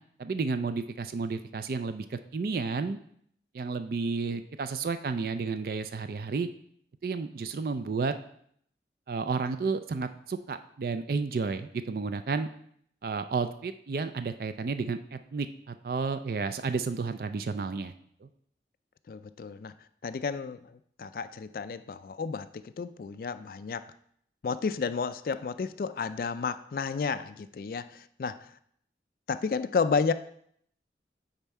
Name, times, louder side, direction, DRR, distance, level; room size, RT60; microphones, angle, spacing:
voice 1, 0.2-3.0 3.5-6.5 7.0-8.1 9.1-12.5 13.0-17.9 18.2-18.3, right 4 dB, 55° right, 10 dB, 0.4 m, -32 dB
voice 2, 19.1-19.7 20.0-23.8 24.4-28.5 29.3-30.1, left 5 dB, 55° left, 12 dB, 0.3 m, -32 dB
8.9 x 4.2 x 4.6 m, 0.66 s
head